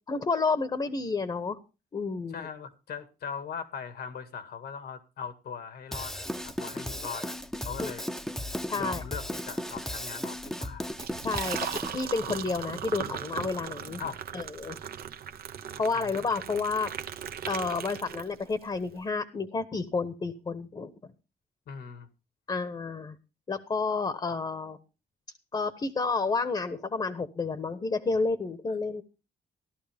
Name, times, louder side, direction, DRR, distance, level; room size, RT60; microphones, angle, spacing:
voice 1, 0.1-1.6 1.9-2.5 7.8-7.9 8.7-9.0 11.2-11.6 11.9-14.0 14.3-14.8 15.8-16.9 17.5-20.9 22.5-23.1 23.5-24.8 25.5-29.0, left 4 dB, 30° left, 11 dB, 1.1 m, -30 dB
voice 2, 2.3-7.4 7.6-8.1 8.8-10.9 11.5-11.6 14.0-14.2 15.9-16.2 21.7-22.1, left 6 dB, 75° left, 10 dB, 2.0 m, -40 dB
Drum kit / Drum, 5.9-11.9, left 1 dB, ahead, 0.8 m, -35 dB
Liquid, 10.9-18.6, right 9 dB, 70° right, 1.0 m, -38 dB
15.5 x 12.5 x 3.5 m, 0.30 s
cardioid pair, 135°, 16 cm